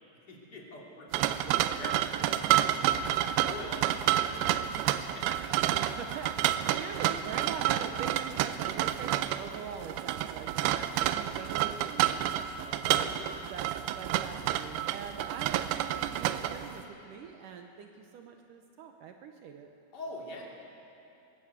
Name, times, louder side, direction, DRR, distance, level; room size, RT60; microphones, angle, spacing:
voice 1, 0.3-2.8 3.3-5.8 6.6-6.9 12.8-13.2 19.9-20.4, left 1 dB, 30° left, -2 dB, 3.2 m, -44 dB
sound 1, 1.1-16.8, right 12 dB, 85° right, 2.6 m, -29 dB
voice 2, 5.8-12.9 13.5-19.7, right 6 dB, 70° right, 4 dB, 2.2 m, -43 dB
21.5 x 17.5 x 8.1 m, 2.8 s
omnidirectional pair, 4.5 m